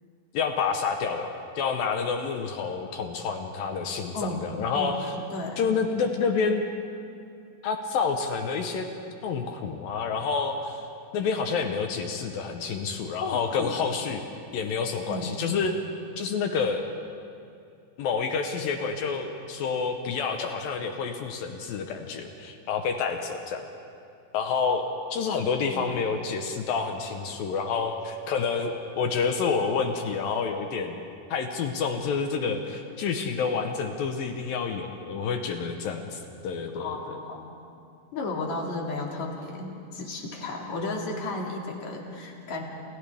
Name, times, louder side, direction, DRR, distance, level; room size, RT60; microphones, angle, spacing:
voice 1, 0.3-5.1 5.6-6.6 7.6-8.9 9.2-10.8 11.1-14.3 14.5-15.7 16.2-16.8 18.0-23.6 24.3-31.0 31.3-37.2, left 5 dB, 70° left, 5 dB, 2.4 m, -28 dB
voice 2, 4.7-5.7 13.1-13.9 15.1-15.4 25.6-26.0 26.9-27.0 36.7-37.6 38.1-42.6, left 2 dB, 45° left, -1 dB, 3.3 m, -34 dB
28.5 x 28.5 x 3.5 m, 2.5 s
omnidirectional pair, 4.9 m